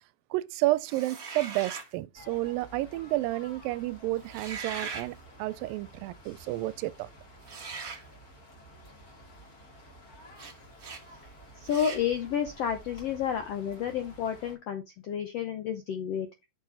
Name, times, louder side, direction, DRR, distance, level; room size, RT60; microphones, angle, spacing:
voice 1, 0.3-7.1, right 17 dB, 85° right, 2.3 m, -31 dB
sound 1, 0.8-1.9 4.2-5.1 7.4-8.0 10.4-10.5 10.8-11.0 11.7-12.0, right 5 dB, 40° right, 1.2 m, -40 dB
sound 2, 2.1-14.5, right 1 dB, 30° left, 2.4 m, -52 dB
voice 2, 11.5-16.5, left 8 dB, 75° left, 1.4 m, -31 dB
6.6 x 6.3 x 4.0 m
omnidirectional pair, 4.0 m